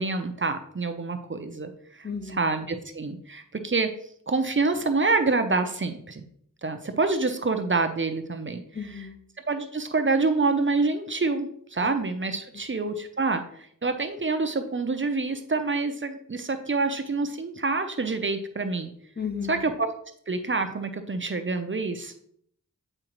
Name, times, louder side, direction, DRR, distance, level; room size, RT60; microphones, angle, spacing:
voice 1, 0.0-3.9 4.3-6.2 6.6-8.6 9.5-18.9 19.5-19.9 20.3-22.1, right 3 dB, 35° right, 7 dB, 0.7 m, -27 dB
voice 2, 2.0-2.4 8.7-9.2 11.8-11.9 12.5-12.6 19.2-19.6, left 6 dB, 30° left, 7 dB, 0.7 m, -34 dB
7.7 x 4.8 x 3.0 m, 0.66 s
wide cardioid pair, 65°, 34 cm